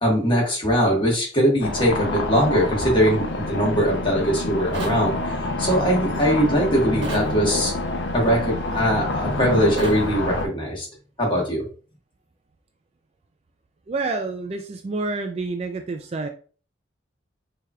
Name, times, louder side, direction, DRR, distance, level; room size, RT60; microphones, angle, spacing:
voice 1, 0.0-5.3 5.6-7.7 8.1-10.9 11.2-11.6, equal, 25° left, -2 dB, 1.3 m, -21 dB
sound 1, 1.6-10.5, left 2 dB, 70° left, 0.6 m, -27 dB
sound 2, 4.7-5.0 7.0-7.3 9.8-10.0, right 2 dB, 75° right, 1.1 m, -31 dB
voice 2, 13.9-16.3, right 3 dB, 35° right, 6 dB, 0.3 m, -28 dB
4.8 x 2.9 x 2.3 m, 0.39 s
head